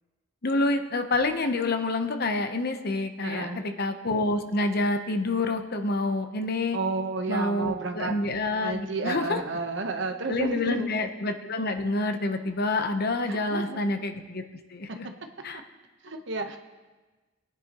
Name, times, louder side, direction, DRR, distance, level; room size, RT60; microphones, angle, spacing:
voice 1, 0.4-6.8 7.3-9.4 10.3-14.4 14.7-15.1 15.4-15.6, left 2 dB, 50° left, 7 dB, 0.9 m, -28 dB
voice 2, 3.2-3.6 6.7-8.1 8.6-10.9 13.3-13.8 15.5-15.6 16.0-16.6, right 3 dB, 65° right, 5 dB, 1.1 m, -31 dB
21.5 x 10.0 x 3.0 m, 1.2 s
head